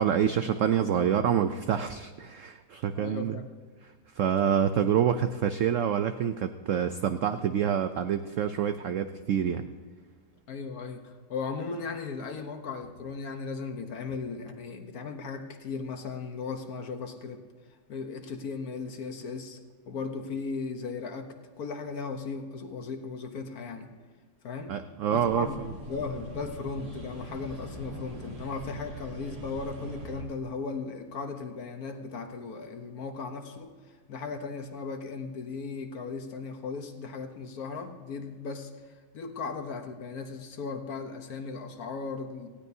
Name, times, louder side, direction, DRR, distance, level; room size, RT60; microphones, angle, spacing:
voice 1, 0.0-3.3 4.1-9.7 24.7-25.5, right 9 dB, 80° right, 9 dB, 0.7 m, -27 dB
voice 2, 2.9-3.5 10.5-17.4 17.9-19.6 19.9-23.9 24.4-24.7 25.1-38.7 39.1-42.5, left 4 dB, 60° left, 6 dB, 1.5 m, -37 dB
sound 1, 25.1-30.2, right 1 dB, 60° right, 2.4 m, -42 dB
18.5 x 15.0 x 2.7 m, 1.5 s
omnidirectional pair, 1.9 m